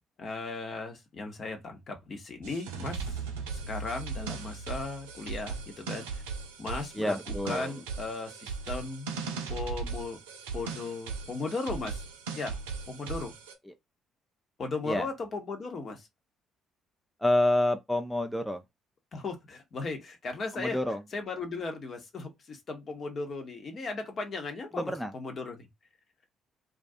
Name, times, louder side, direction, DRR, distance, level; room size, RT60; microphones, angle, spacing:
voice 1, 0.2-3.2 3.5-6.2 6.6-9.1 9.5-10.2 10.5-12.0 12.3-12.6 12.9-13.3 14.6-16.1 19.1-20.8 21.1-25.7, left 3 dB, 45° left, 0.8 m, -37 dB
sound 1, 2.4-13.5, right 5 dB, 80° right, 0.5 m, -38 dB
voice 2, 6.9-7.8 13.7-13.8 14.9-15.1 17.2-18.6 20.5-21.0 24.7-25.1, left 1 dB, 5° left, 0.4 m, -28 dB
2.4 x 2.2 x 2.6 m
hypercardioid pair, 45°, 0 cm